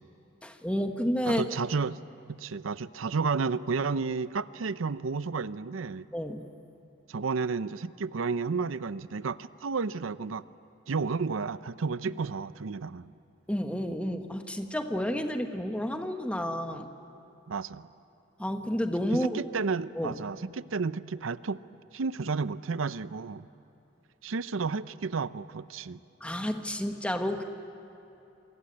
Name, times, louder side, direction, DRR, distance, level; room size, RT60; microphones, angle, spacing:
voice 1, 0.4-1.4 6.1-6.5 12.1-12.2 13.5-16.9 18.4-19.4 19.9-20.2 26.2-27.4, equal, 5° left, 5 dB, 1.3 m, -30 dB
voice 2, 1.3-2.0 2.3-6.1 7.1-10.4 10.9-13.1 17.5-17.9 19.3-21.6 21.9-23.5 24.2-26.0, right 4 dB, 85° right, 15 dB, 0.6 m, -32 dB
28.0 x 24.5 x 8.7 m, 3.0 s
head